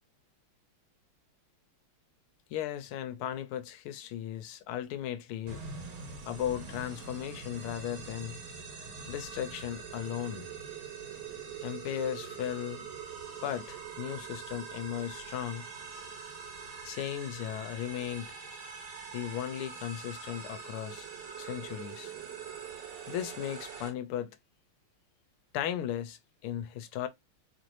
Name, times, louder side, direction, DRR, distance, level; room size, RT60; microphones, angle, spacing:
voice 1, 2.5-5.6 6.3-8.4 9.1-10.5 11.6-12.9 13.4-15.6 16.8-18.3 19.1-21.1 21.4-22.1 23.1-24.3 25.5-27.1, left 10 dB, 85° left, 1.5 m, -36 dB
sound 1, 5.5-23.9, right 5 dB, 90° right, 2.4 m, -43 dB
4.4 x 2.6 x 3.0 m
omnidirectional pair, 2.4 m